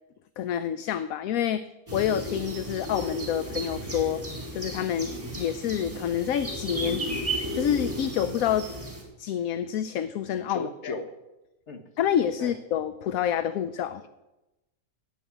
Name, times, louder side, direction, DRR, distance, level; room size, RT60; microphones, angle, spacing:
voice 1, 0.4-4.2 4.5-7.0 7.3-8.7 9.2-10.9 12.0-14.0, left 9 dB, 70° left, 13 dB, 1.0 m, -28 dB
sound 1, 1.9-9.0, right 1 dB, 20° right, 3.4 m, -34 dB
voice 2, 10.5-11.1 11.7-11.8 12.4-12.5, left 3 dB, 50° left, 7 dB, 1.7 m, -35 dB
11.5 x 8.8 x 9.2 m, 0.99 s
omnidirectional pair, 1.6 m